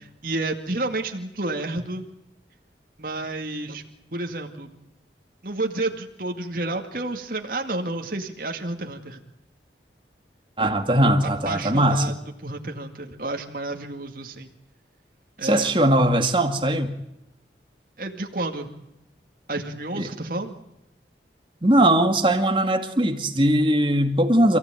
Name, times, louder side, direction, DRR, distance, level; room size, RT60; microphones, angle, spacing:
voice 1, 0.2-2.1 3.0-3.8 4.1-4.7 5.4-9.2 11.0-14.5 15.4-15.7 18.0-18.7 19.5-20.6, right 2 dB, 50° right, 3 dB, 2.2 m, -30 dB
voice 2, 10.6-12.1 15.4-16.9 20.0-20.1 21.6-24.6, right 1 dB, 30° right, 6 dB, 2.2 m, -20 dB
28.0 x 16.5 x 9.1 m, 0.87 s
head